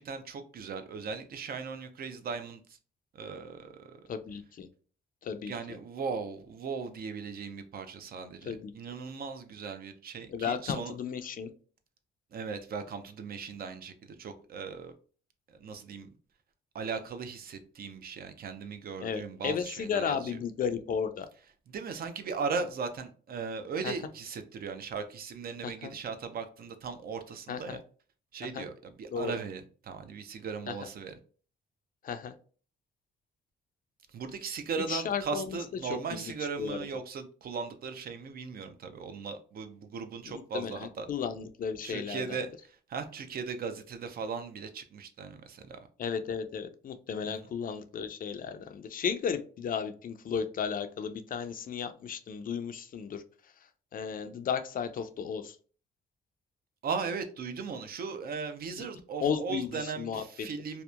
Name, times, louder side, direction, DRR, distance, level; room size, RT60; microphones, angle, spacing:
voice 1, 0.0-2.8 3.1-4.0 5.5-10.9 12.3-14.9 15.5-16.1 16.7-20.4 21.7-27.8 28.3-28.7 29.0-31.1 34.1-41.1 41.8-45.8 47.2-47.5 56.8-60.8, right 5 dB, 50° right, 8 dB, 0.5 m, -38 dB
voice 2, 4.1-4.7 5.2-5.5 8.5-8.7 10.3-11.5 19.0-21.3 23.8-23.9 25.6-25.9 27.5-27.8 28.5-28.7 29.1-29.3 30.7-30.8 32.0-32.3 34.8-35.6 35.8-36.3 36.6-36.8 40.2-42.4 46.0-53.5 53.9-55.6 58.8-58.9 59.2-60.5, left 7 dB, 45° left, 9 dB, 0.4 m, -34 dB
2.8 x 2.1 x 2.3 m, 0.40 s
cardioid pair, 90°, 20 cm